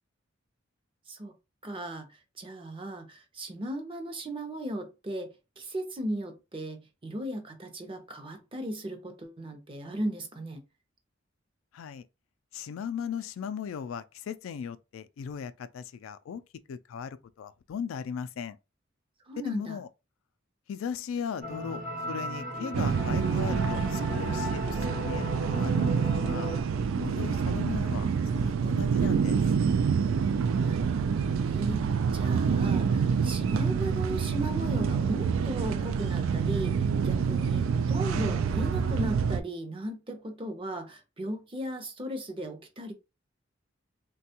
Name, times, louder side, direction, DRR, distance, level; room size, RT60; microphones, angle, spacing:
voice 1, 1.6-2.1 2.4-5.3 5.6-10.6 19.3-19.8 30.6-42.9, right 1 dB, 25° right, 0.6 m, -36 dB
voice 2, 11.7-12.0 12.5-16.4 16.7-18.6 19.4-19.9 20.7-26.5 27.0-29.4, left 7 dB, 90° left, 0.3 m, -38 dB
sound 1, 21.4-26.6, equal, 50° right, 1.0 m, -36 dB
sound 2, 22.7-39.4, right 6 dB, 85° right, 0.3 m, -27 dB
3.3 x 2.2 x 2.8 m
head